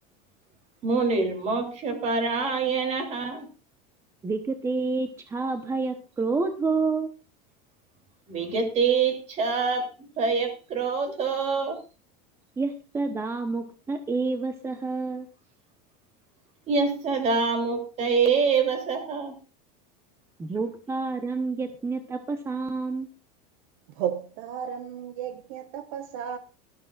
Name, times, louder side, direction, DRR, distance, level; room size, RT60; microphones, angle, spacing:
voice 1, 0.8-3.5 8.3-9.9 10.2-11.8 16.7-19.4, right 5 dB, 35° right, 3.1 m, -25 dB
voice 2, 4.2-7.1 12.6-15.3 20.4-23.1, right 3 dB, 15° right, 0.9 m, -29 dB
voice 3, 23.9-26.4, right 9 dB, 60° right, 1.2 m, -33 dB
19.0 x 13.0 x 2.4 m
supercardioid pair, 150°, 20 cm